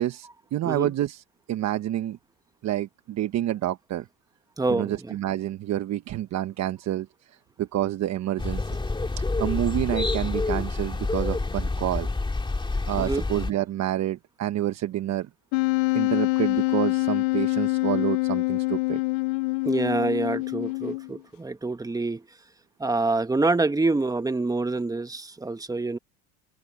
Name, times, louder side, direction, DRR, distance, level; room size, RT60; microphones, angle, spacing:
voice 1, 0.0-2.2 2.6-4.1 4.7-8.8 9.2-12.1 12.9-15.3 15.9-19.0, right 13 dB, 50° right, 1.1 m, -28 dB
voice 2, 4.6-5.2 13.0-13.3 19.6-22.2 22.8-26.0, right 3 dB, 10° right, 1.2 m, -26 dB
sound 1, 8.4-13.5, left 3 dB, 15° left, 2.3 m, -28 dB
Wind instrument woodwind instrument, 15.5-21.2, left 24 dB, 80° left, 0.8 m, -25 dB
open air
supercardioid pair, 105°, 36 cm